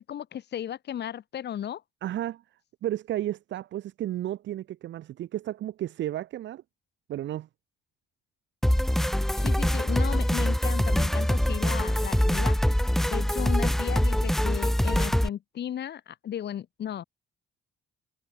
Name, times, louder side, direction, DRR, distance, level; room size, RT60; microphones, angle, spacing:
voice 1, 0.0-1.8 9.4-12.5 13.1-17.0, left 10 dB, 60° left, 1.3 m, -35 dB
voice 2, 2.0-2.4 2.8-6.6 7.1-7.5, right 13 dB, 65° right, 0.7 m, -33 dB
sound 1, 8.6-15.3, equal, ahead, 0.5 m, -24 dB
cardioid pair, 90°, 20 cm